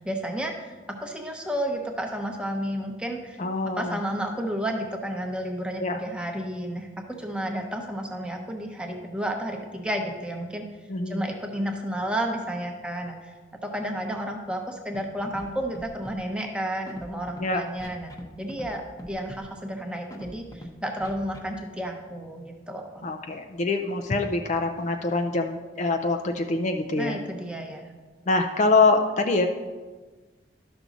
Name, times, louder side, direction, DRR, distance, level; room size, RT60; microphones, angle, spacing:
voice 1, 0.0-3.4 3.6-10.6 11.1-13.3 13.6-18.1 18.4-23.1 27.0-27.9, equal, 5° right, 2 dB, 0.9 m, -32 dB
voice 2, 3.4-4.0 5.8-6.0 10.9-11.2 17.4-17.6 23.0-27.2 28.3-29.5, left 3 dB, 40° left, 5 dB, 0.5 m, -24 dB
Scratching (performance technique), 14.9-15.0 15.2-15.5 15.7-16.2 16.8-17.4 17.8-18.2 18.5-18.7 19.0-19.4 20.1-20.7 21.0-21.4, equal, 20° left, 0.9 m, -40 dB
12.0 x 6.1 x 4.0 m, 1.3 s
head